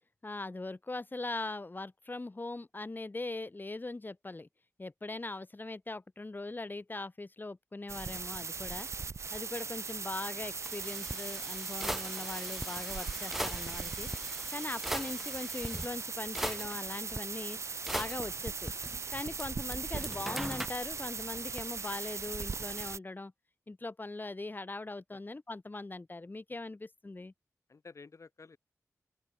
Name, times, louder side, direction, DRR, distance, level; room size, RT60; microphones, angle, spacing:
voice 1, 0.2-4.5 4.8-8.9 9.3-14.1 14.5-17.6 17.9-18.7 19.1-23.3 23.7-27.3, left 2 dB, 35° left, 2.0 m, -40 dB
sound 1, 7.9-23.0, right 5 dB, 55° right, 0.5 m, -39 dB
sound 2, 10.6-15.9 16.4-17.2 17.9-19.4 19.7-20.7, equal, 5° right, 1.9 m, -40 dB
voice 2, 19.0-19.4 27.7-28.6, left 4 dB, 60° left, 1.6 m, -53 dB
open air
cardioid pair, 55°, 6 cm